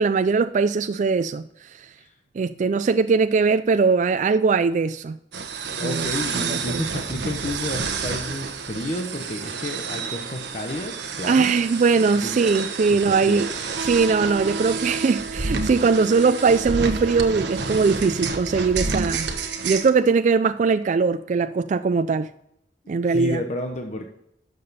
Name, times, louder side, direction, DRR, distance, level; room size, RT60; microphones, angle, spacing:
voice 1, 0.0-1.9 2.4-5.2 5.8-6.8 11.2-13.5 13.8-19.3 19.6-22.3 22.9-23.4, right 4 dB, 40° right, 0.3 m, -21 dB
sound 1, 5.3-19.9, right 4 dB, 70° right, 1.2 m, -29 dB
voice 2, 5.8-11.5 11.9-12.4 12.9-13.5 23.1-24.0, left 1 dB, 40° left, 1.0 m, -31 dB
12.0 x 6.8 x 4.1 m
head